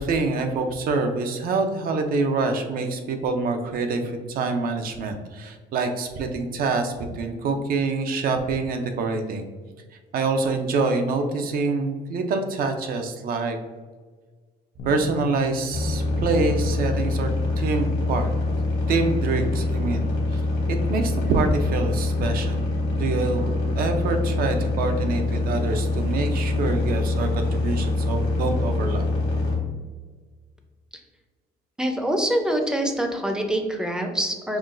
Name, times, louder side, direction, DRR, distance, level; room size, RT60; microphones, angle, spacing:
voice 1, 0.0-9.5 10.1-13.6 14.8-17.3 17.6-18.3 18.9-20.4 20.9-22.6 22.9-29.1, right 3 dB, 60° right, 6 dB, 0.6 m, -26 dB
Bass guitar, 14.8-21.0, left 6 dB, 55° left, 0.4 m, -42 dB
sound 1, 15.7-29.6, left 2 dB, 80° left, 1.2 m, -25 dB
voice 2, 31.8-34.6, right 1 dB, 5° right, 3 dB, 0.5 m, -25 dB
5.6 x 2.3 x 2.5 m, 1.4 s
cardioid pair, 110°, 17 cm